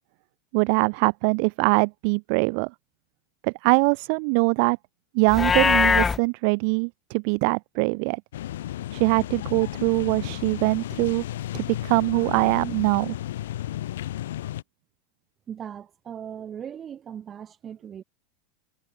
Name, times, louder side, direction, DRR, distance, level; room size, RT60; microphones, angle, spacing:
voice 1, 0.5-2.7 3.4-4.8 5.1-8.2 8.9-11.2 11.5-13.1, right 38 dB, 60° right, 1.2 m, -23 dB
Livestock farm animals working animals, 5.3-6.2, left 5 dB, 20° left, 0.4 m, -20 dB
sound 1, 8.3-14.6, left 13 dB, 75° left, 3.9 m, -33 dB
voice 2, 15.5-18.0, right 8 dB, 30° right, 5.3 m, -38 dB
hypercardioid pair, 95°, 0 cm